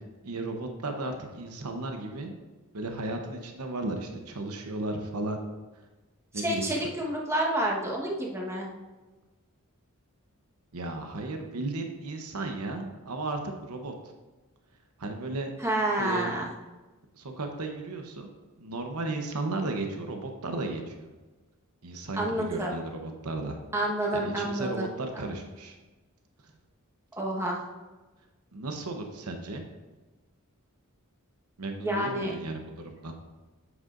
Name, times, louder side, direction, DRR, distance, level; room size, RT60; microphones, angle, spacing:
voice 1, 0.2-2.3 2.7-5.4 6.3-6.6 10.7-13.9 15.0-15.5 16.0-16.3 17.1-18.3 18.6-21.1 21.8-23.6 24.1-25.7 28.5-29.6 31.6-33.1, right 2 dB, 85° right, 4 dB, 0.9 m, -34 dB
voice 2, 6.3-8.7 15.6-16.5 22.2-22.7 23.7-24.9 25.1-25.3 27.2-27.6 31.8-32.3, right 1 dB, 10° right, -3 dB, 1.3 m, -29 dB
9.5 x 8.0 x 2.6 m, 1.2 s
head